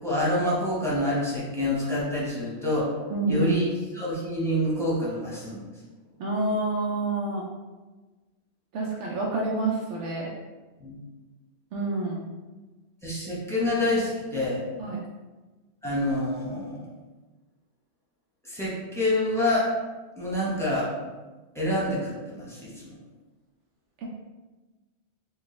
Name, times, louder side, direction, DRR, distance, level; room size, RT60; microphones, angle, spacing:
voice 1, 0.0-2.9 3.3-3.7 3.9-5.6 10.8-11.0 13.0-14.6 15.8-16.9 18.4-19.7 20.2-20.9 21.5-22.9, left 1 dB, 5° left, -7 dB, 0.9 m, -27 dB
voice 2, 3.1-3.6 6.2-7.5 8.7-10.3 11.7-12.3 14.8-15.0, right 2 dB, 80° right, -3 dB, 0.9 m, -28 dB
4.5 x 2.4 x 3.2 m, 1.2 s
omnidirectional pair, 1.2 m